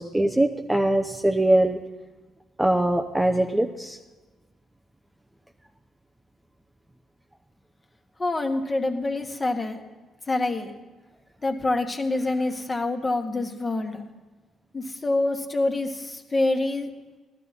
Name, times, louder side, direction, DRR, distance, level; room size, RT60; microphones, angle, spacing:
voice 1, 0.0-1.8 2.6-4.0, right 1 dB, 10° right, 4 dB, 0.7 m, -22 dB
voice 2, 8.2-9.8 10.3-10.7 11.4-14.0 14.7-16.9, left 2 dB, 25° left, 4 dB, 1.5 m, -26 dB
15.0 x 12.0 x 4.2 m, 1.3 s
cardioid pair, 90°, 0 cm